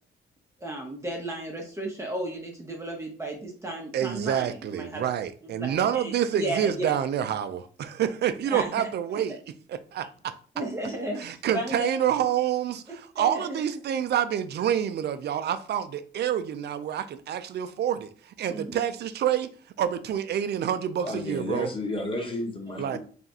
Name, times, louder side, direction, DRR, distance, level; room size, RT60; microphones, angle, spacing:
voice 1, 0.6-5.0 5.5-7.0 8.5-8.9 10.5-11.9 13.1-13.8 18.5-18.8, right 1 dB, 15° right, 0.8 m, -34 dB
voice 2, 3.9-9.4 9.7-10.3 11.2-18.1 18.4-19.5 19.8-21.7 22.8-23.0, right 9 dB, 55° right, 0.4 m, -27 dB
voice 3, 21.0-23.0, left 1 dB, 25° left, 1.2 m, -32 dB
3.4 x 2.4 x 4.1 m
cardioid pair, 90°, 20 cm